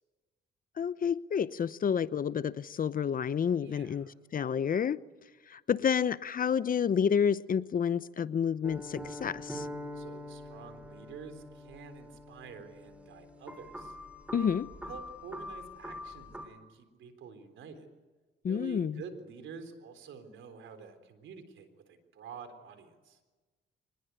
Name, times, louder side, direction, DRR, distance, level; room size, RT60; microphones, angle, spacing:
voice 1, 0.8-5.0 5.5-9.7 14.3-14.7 18.4-19.0, left 7 dB, 45° left, 0.9 m, -29 dB
voice 2, 3.6-4.1 9.9-14.0 14.3-14.5 14.8-17.9 18.5-23.2, right 6 dB, 75° right, 3.8 m, -48 dB
sound 1, 8.6-16.5, left 1 dB, 5° right, 3.4 m, -44 dB
24.5 x 20.0 x 9.3 m
cardioid pair, 90°, 20 cm